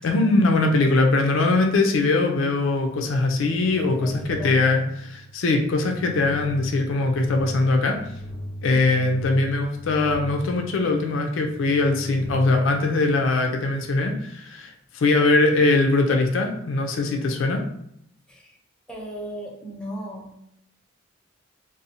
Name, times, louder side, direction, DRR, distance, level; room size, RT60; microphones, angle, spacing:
voice 1, 0.0-8.0 8.6-17.6, left 2 dB, 75° left, 3 dB, 0.4 m, -21 dB
sound 1, 3.0-13.6, equal, 85° right, 1.0 m, -39 dB
voice 2, 3.8-4.5 8.7-9.1 18.3-18.6 18.9-20.4, equal, 5° left, -3 dB, 0.5 m, -37 dB
2.7 x 2.0 x 2.6 m, 0.75 s
head